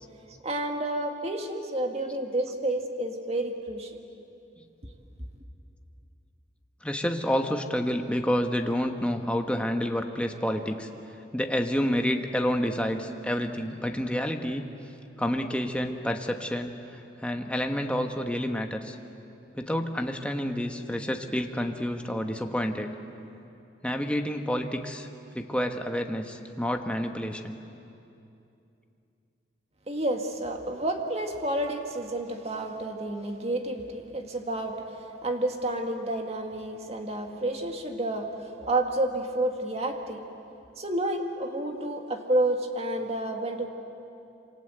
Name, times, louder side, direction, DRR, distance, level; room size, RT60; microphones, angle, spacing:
voice 1, 0.4-3.9 29.9-40.2 40.8-43.7, right 1 dB, 35° right, 3 dB, 2.1 m, -30 dB
voice 2, 6.8-10.9 11.3-14.7 15.2-19.0 19.5-22.9 23.8-25.1 25.3-27.6, equal, 5° left, 4 dB, 1.3 m, -29 dB
27.0 x 26.0 x 8.1 m, 2.7 s
head